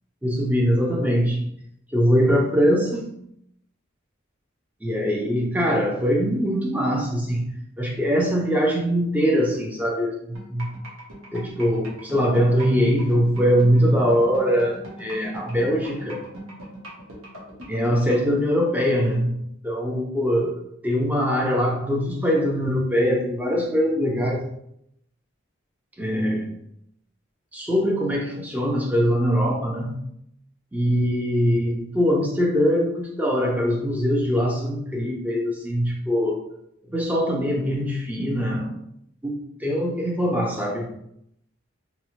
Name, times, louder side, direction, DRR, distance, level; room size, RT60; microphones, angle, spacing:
voice 1, 0.2-1.5 1.9-3.1 4.8-10.7 11.3-16.2 17.7-24.4 26.0-26.5 27.5-30.0 30.7-36.4 36.9-38.7 39.2-40.9, equal, 10° right, -1 dB, 0.4 m, -22 dB
sound 1, 10.3-18.3, right 2 dB, 90° right, 0.8 m, -39 dB
2.6 x 2.0 x 2.8 m, 0.74 s
head